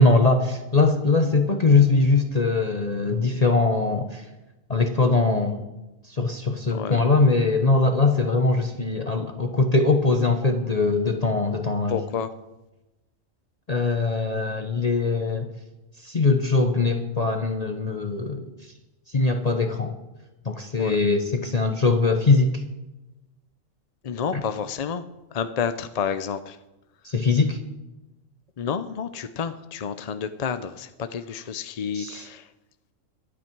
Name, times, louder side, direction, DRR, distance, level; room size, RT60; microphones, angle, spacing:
voice 1, 0.0-4.2 4.7-5.6 6.1-12.0 13.7-15.5 16.0-18.5 19.1-19.9 20.4-22.6 24.3-24.4 27.0-27.6 31.9-32.2, left 3 dB, 35° left, 5 dB, 0.8 m, -21 dB
voice 2, 6.7-7.0 11.9-12.3 20.8-21.0 24.0-25.0 25.3-26.6 28.6-32.5, left 7 dB, 55° left, 11 dB, 0.4 m, -30 dB
23.0 x 8.6 x 4.6 m, 1.0 s
omnidirectional pair, 1.4 m